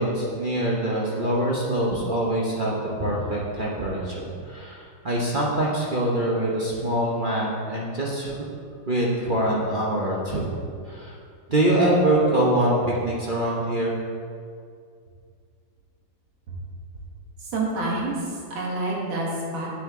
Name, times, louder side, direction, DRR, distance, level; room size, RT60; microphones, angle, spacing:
voice 1, 0.0-8.4 8.9-10.5 10.9-11.2 11.5-13.9, right 1 dB, 45° right, -4 dB, 0.6 m, -24 dB
voice 2, 17.4-19.7, right 2 dB, 85° right, -3 dB, 2.3 m, -28 dB
7.6 x 6.9 x 3.6 m, 2.2 s
omnidirectional pair, 2.1 m